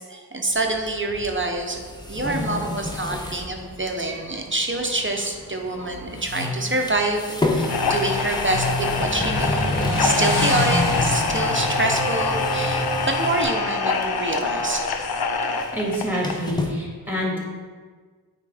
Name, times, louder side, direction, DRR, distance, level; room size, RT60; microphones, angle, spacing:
voice 1, 0.0-1.8 2.1-7.2 7.5-14.8, right 2 dB, 30° right, 2 dB, 0.7 m, -26 dB
Motorcycle, 0.5-13.4, left 1 dB, 50° left, 1.1 m, -32 dB
sound 1, 1.5-3.5 3.8-3.9 5.6-5.9 6.1-13.5 13.9-14.4 14.6-16.7, left 1 dB, 10° left, 0.7 m, -29 dB
sound 2, 7.6-16.5, left 4 dB, 70° left, 0.5 m, -25 dB
voice 2, 15.7-17.4, equal, 5° right, -3 dB, 1.8 m, -27 dB
8.9 x 3.7 x 3.4 m, 1.5 s
wide cardioid pair, 55°, 39 cm